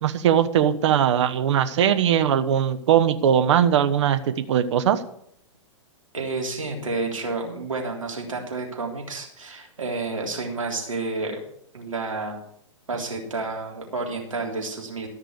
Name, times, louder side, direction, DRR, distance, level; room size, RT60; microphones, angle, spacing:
voice 1, 0.0-5.0, right 9 dB, 65° right, 10 dB, 1.1 m, -20 dB
voice 2, 6.1-11.4 11.7-12.4 12.9-15.1, right 3 dB, 90° right, 0 dB, 3.5 m, -30 dB
13.5 x 6.0 x 8.2 m, 0.71 s
hypercardioid pair, 115°, 16 cm